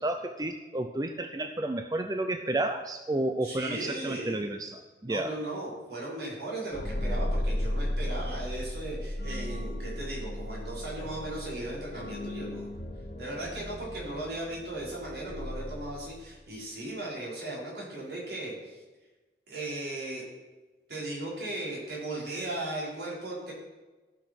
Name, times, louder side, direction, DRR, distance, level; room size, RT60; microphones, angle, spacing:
voice 1, 0.0-5.3, right 2 dB, 20° right, 7 dB, 0.4 m, -31 dB
voice 2, 3.4-4.5 5.1-12.7 13.2-18.8 19.5-20.2 20.9-23.5, right 1 dB, 65° right, -5 dB, 4.8 m, -37 dB
sound 1, 6.7-16.4, left 1 dB, 55° left, 1.5 m, -35 dB
14.5 x 6.3 x 6.0 m, 1.2 s
head